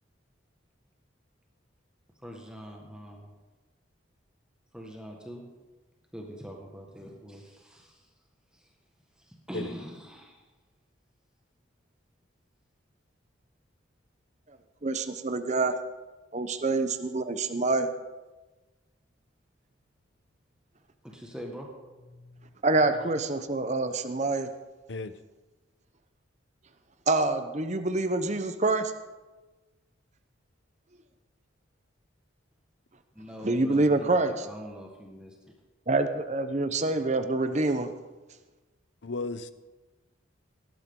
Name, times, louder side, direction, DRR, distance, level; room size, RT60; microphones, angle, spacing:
voice 1, 2.2-3.3 4.7-5.5 6.1-8.1 8.5-8.7 9.2-10.4 21.0-22.5 33.1-35.3, equal, 5° right, 0 dB, 1.6 m, -43 dB
voice 2, 14.8-15.7 16.3-17.9 22.6-24.5 27.1-28.9 33.4-34.4 35.9-37.9, right 2 dB, 35° right, 9 dB, 0.8 m, -26 dB
voice 3, 39.0-39.5, left 3 dB, 60° left, 13 dB, 0.7 m, -34 dB
18.0 x 12.0 x 3.8 m, 1.2 s
head